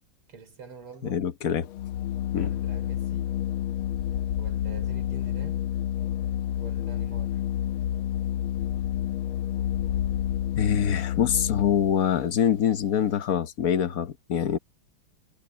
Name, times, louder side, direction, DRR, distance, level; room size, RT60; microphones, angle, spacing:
voice 1, 0.3-1.3 2.3-3.4 4.4-5.7 6.6-7.4, right 4 dB, 80° right, 5.3 m, -45 dB
voice 2, 1.0-1.7 2.3-2.5 10.6-14.6, left 9 dB, 55° left, 1.0 m, -25 dB
Organ, 1.7-12.0, left 11 dB, 75° left, 1.5 m, -29 dB
omnidirectional pair, 2.4 m